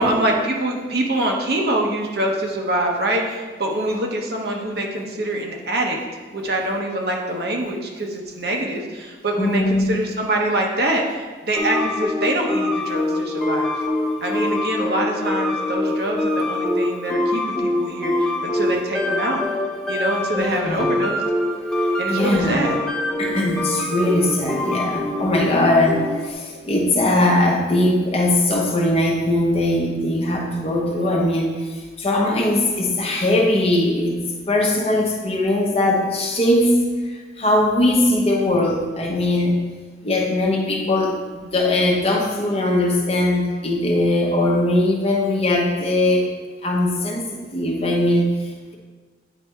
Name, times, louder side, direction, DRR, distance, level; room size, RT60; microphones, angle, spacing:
voice 1, 0.0-6.0 6.3-13.7 14.2-19.4 19.9-21.2 21.8-22.8, right 1 dB, 60° right, 0 dB, 1.0 m, -24 dB
voice 2, 9.4-10.0 20.4-20.9 22.1-22.7 23.2-34.1 34.5-36.8 37.0-39.6 40.0-46.3 46.6-48.3, left 1 dB, 35° left, -1 dB, 1.0 m, -20 dB
sound 1, 11.6-26.3, left 1 dB, ahead, 0.6 m, -24 dB
9.0 x 3.4 x 4.4 m, 1.4 s
head